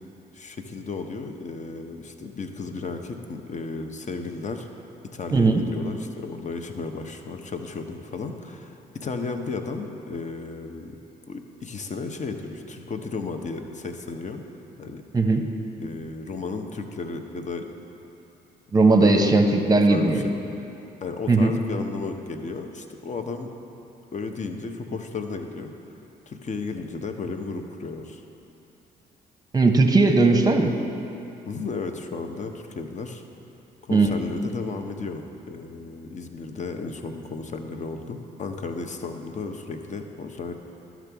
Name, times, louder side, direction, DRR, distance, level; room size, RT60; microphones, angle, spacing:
voice 1, 0.3-4.7 5.1-11.0 11.3-14.4 14.8-15.0 15.8-17.7 19.0-19.3 19.7-20.3 21.0-23.5 24.1-25.7 26.3-28.2 31.5-33.2 33.8-40.5, left 4 dB, 35° left, 6 dB, 0.8 m, -34 dB
voice 2, 5.3-5.6 15.1-15.4 18.7-20.2 21.3-21.5 29.5-30.7 33.9-34.1, right 3 dB, 20° right, 5 dB, 0.9 m, -18 dB
12.0 x 6.0 x 3.4 m, 2.8 s
hypercardioid pair, 55°, 20 cm